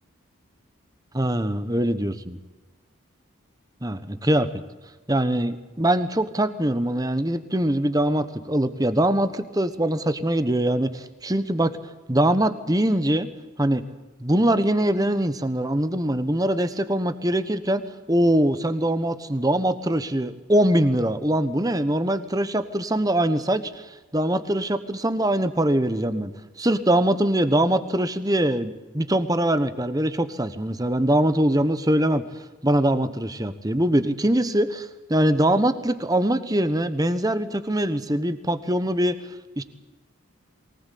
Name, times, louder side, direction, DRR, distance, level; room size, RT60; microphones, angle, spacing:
voice 1, 1.1-2.1 3.8-4.5 5.1-11.7 12.1-13.3 13.6-13.8 14.2-17.8 18.1-26.3 26.6-32.2 32.6-39.2 39.6-39.7, right 1 dB, 15° right, 11 dB, 1.1 m, -22 dB
23.0 x 19.0 x 8.5 m, 1.2 s
head